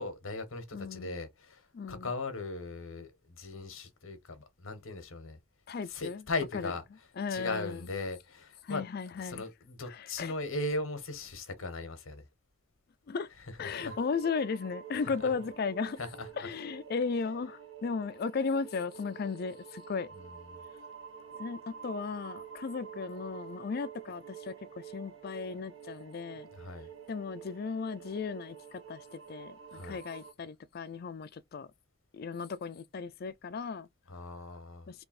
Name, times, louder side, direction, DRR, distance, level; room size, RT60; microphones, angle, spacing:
voice 1, 0.0-5.4 5.9-6.8 7.3-8.9 9.2-12.2 13.6-14.0 15.2-15.3 16.0-16.5 20.1-20.3 26.5-26.9 29.7-30.0 34.1-34.9, left 2 dB, 65° left, 1.0 m, -38 dB
voice 2, 0.7-1.2 1.7-2.1 5.7-6.2 6.5-6.7 7.2-7.9 8.6-9.4 9.9-10.3 13.1-13.3 13.6-16.0 16.4-20.1 21.4-26.5 27.1-31.7 32.1-33.9 34.9-35.0, left 5 dB, 45° left, 0.3 m, -36 dB
sound 1, 13.8-30.3, right 7 dB, 60° right, 1.2 m, -48 dB
3.3 x 2.5 x 4.1 m
head